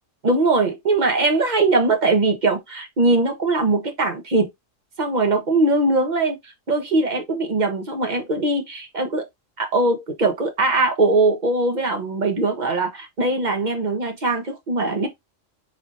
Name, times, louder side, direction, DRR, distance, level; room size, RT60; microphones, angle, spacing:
voice 1, 0.2-4.5 5.0-6.4 6.7-9.2 9.6-15.1, right 2 dB, 40° right, 1.0 m, -21 dB
4.9 x 3.2 x 2.6 m
omnidirectional pair, 1.3 m